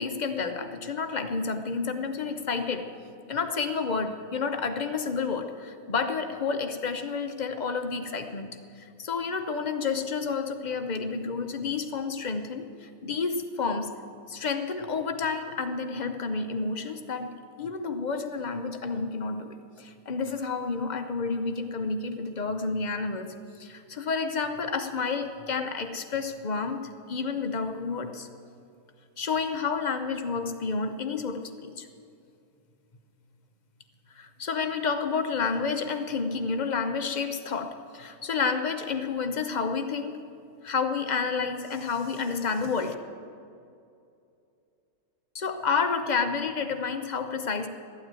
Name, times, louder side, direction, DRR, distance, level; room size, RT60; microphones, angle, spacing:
voice 1, 0.0-2.9 3.3-8.5 8.8-13.9 14.3-17.3 17.6-23.3 23.6-26.8 27.1-28.3 29.2-31.9 34.2-40.2 40.6-43.0 45.3-47.7, left 5 dB, 40° left, 7 dB, 0.7 m, -30 dB
13.5 x 9.1 x 9.0 m, 2.6 s
omnidirectional pair, 1.6 m